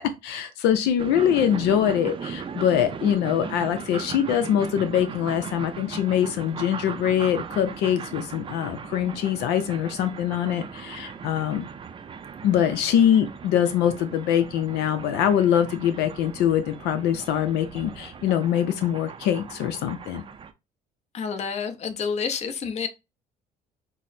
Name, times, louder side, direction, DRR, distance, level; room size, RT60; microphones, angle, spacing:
voice 1, 0.0-11.7 12.4-20.2, left 9 dB, 85° left, 0.5 m, -23 dB
sound 1, 1.0-20.5, right 6 dB, 30° right, 0.4 m, -38 dB
voice 2, 21.1-22.9, left 6 dB, 40° left, 0.7 m, -29 dB
6.0 x 2.0 x 2.6 m
cardioid pair, 110°, 17 cm